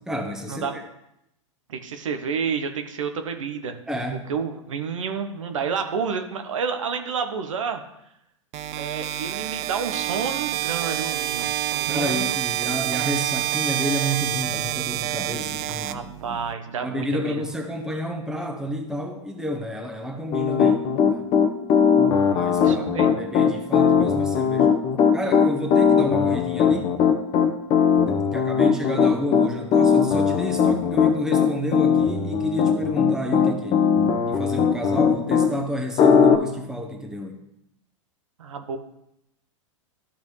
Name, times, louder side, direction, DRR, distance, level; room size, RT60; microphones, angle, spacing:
voice 1, 0.1-0.8 3.9-4.3 11.9-16.0 16.3-16.4 16.8-21.4 22.3-24.7 25.1-26.9 28.1-33.8 34.3-37.4, equal, 5° right, 2 dB, 1.2 m, -30 dB
voice 2, 1.7-3.8 4.3-7.8 8.8-11.5 11.7-12.3 15.7-17.5 22.6-23.2 38.4-38.8, right 6 dB, 75° right, 7 dB, 0.9 m, -30 dB
sound 1, 8.5-16.5, right 15 dB, 40° right, 0.4 m, -27 dB
Piano, 20.3-35.5 36.0-36.4, left 7 dB, 35° left, 0.9 m, -19 dB
13.0 x 5.1 x 3.2 m, 0.82 s
hypercardioid pair, 105°, 17 cm